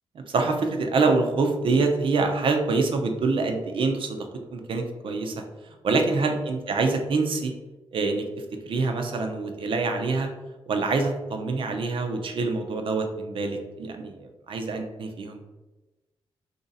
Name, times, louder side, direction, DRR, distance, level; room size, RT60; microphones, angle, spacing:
voice 1, 0.1-7.5 7.9-8.3 8.7-10.3 10.7-15.4, right 3 dB, 60° right, 4 dB, 0.5 m, -26 dB
3.1 x 2.6 x 4.0 m, 1.1 s
wide cardioid pair, 125°, 10 cm